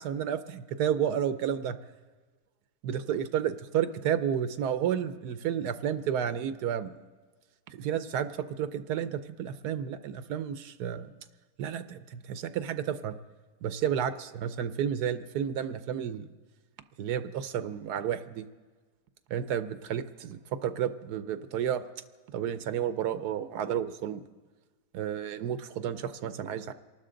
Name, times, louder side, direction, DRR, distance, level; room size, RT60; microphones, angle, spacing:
voice 1, 0.0-1.8 2.8-6.9 7.7-11.1 11.6-13.1 13.6-16.3 17.0-18.4 19.3-21.8 22.3-24.2 24.9-26.7, right 9 dB, 80° right, 12 dB, 1.3 m, -31 dB
28.0 x 12.0 x 3.8 m, 1.4 s
omnidirectional pair, 1.7 m